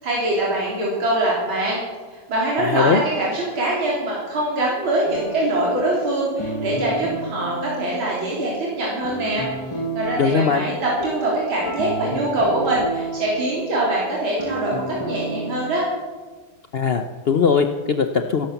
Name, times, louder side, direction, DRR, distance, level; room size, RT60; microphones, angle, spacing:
voice 1, 0.0-1.8 2.1-9.5 9.9-15.9, right 1 dB, 90° right, -4 dB, 4.2 m, -23 dB
voice 2, 2.6-3.0 10.2-10.7 16.7-18.5, left 6 dB, 70° left, 7 dB, 0.5 m, -20 dB
sound 1, 5.1-15.7, right 2 dB, 15° left, 1.1 m, -32 dB
16.0 x 12.0 x 7.1 m, 1.4 s
omnidirectional pair, 2.2 m